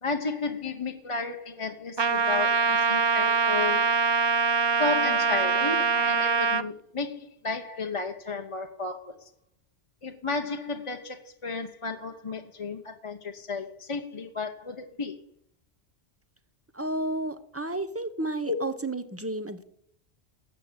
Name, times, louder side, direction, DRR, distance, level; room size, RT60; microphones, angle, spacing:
voice 1, 0.0-3.8 4.8-9.3 10.0-15.1 18.5-18.6, left 4 dB, 30° left, 4 dB, 0.8 m, -33 dB
Trumpet, 2.0-6.6, right 5 dB, 45° right, 0.3 m, -24 dB
voice 2, 16.7-19.6, right 2 dB, 15° right, 11 dB, 0.8 m, -32 dB
12.5 x 8.2 x 7.3 m, 0.68 s
omnidirectional pair, 1.1 m